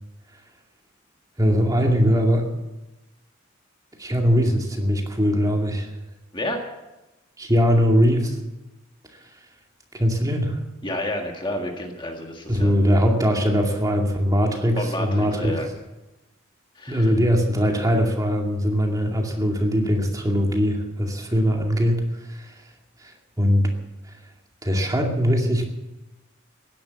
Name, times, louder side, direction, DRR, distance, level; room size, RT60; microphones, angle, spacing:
voice 1, 1.4-2.5 4.0-5.9 7.4-8.4 9.9-10.6 12.5-15.6 16.9-22.5 23.0-23.7 24.6-25.7, equal, 15° right, 1 dB, 2.4 m, -21 dB
voice 2, 6.3-6.6 10.8-12.7 14.8-15.7 16.7-17.1, left 1 dB, 25° left, 3 dB, 1.7 m, -30 dB
16.0 x 11.5 x 7.1 m, 1.0 s
head